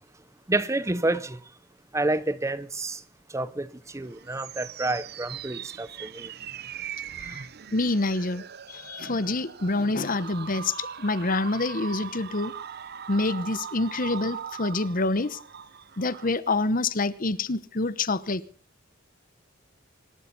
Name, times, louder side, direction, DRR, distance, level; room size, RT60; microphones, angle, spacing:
voice 1, 0.5-1.4 1.9-3.0 3.3-6.3, right 2 dB, 15° right, 0.7 m, -29 dB
sound 1, 3.9-16.3, right 8 dB, 50° right, 0.7 m, -40 dB
voice 2, 7.2-12.5 13.1-15.4 16.0-18.4, left 2 dB, 45° left, 1.0 m, -27 dB
26.5 x 12.5 x 4.1 m
head